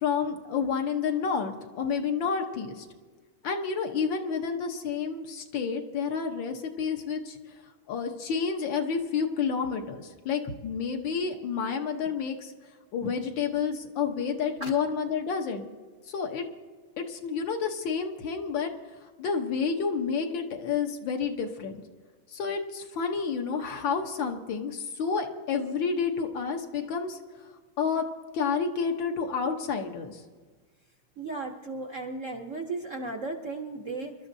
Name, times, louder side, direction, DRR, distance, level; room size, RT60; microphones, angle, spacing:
voice 1, 0.0-2.9 3.4-7.4 7.9-12.5 12.9-15.7 16.1-16.4 17.0-18.7 19.2-21.8 22.3-27.2 27.8-28.0 28.3-30.2, left 6 dB, 70° left, 4 dB, 1.7 m, -30 dB
voice 2, 31.2-34.2, right 3 dB, 55° right, 3 dB, 0.9 m, -35 dB
26.5 x 12.5 x 2.7 m, 1.4 s
omnidirectional pair, 2.2 m